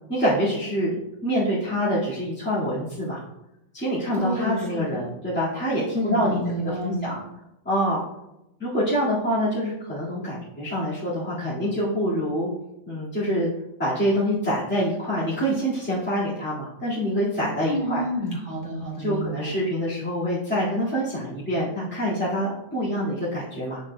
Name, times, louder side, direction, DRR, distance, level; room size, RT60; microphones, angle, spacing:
voice 1, 0.1-0.9 1.2-3.2 3.7-6.4 6.8-7.1 7.6-8.0 8.6-12.5 12.9-13.5 13.8-18.0 19.0-23.8, equal, 5° left, -10 dB, 2.2 m, -25 dB
voice 2, 4.1-5.1 5.9-7.2 17.7-19.5, equal, 30° left, -7 dB, 2.8 m, -29 dB
8.7 x 6.5 x 2.4 m, 0.89 s
omnidirectional pair, 1.5 m